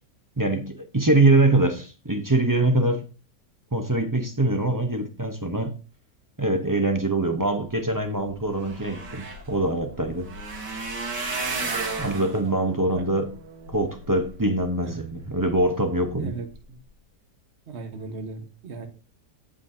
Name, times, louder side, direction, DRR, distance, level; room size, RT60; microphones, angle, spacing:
voice 1, 0.4-3.0 3.7-5.7 6.4-10.3 12.0-13.4 13.7-16.4, right 2 dB, 25° right, 0.4 m, -23 dB
sound 1, 8.3-14.6 15.2-15.6 16.1-16.3 16.5-16.6, right 3 dB, 80° right, 2.4 m, -34 dB
voice 2, 12.7-13.1 16.2-16.8 17.7-18.9, right 3 dB, 45° right, 1.4 m, -37 dB
15.5 x 5.2 x 2.7 m
omnidirectional pair, 1.8 m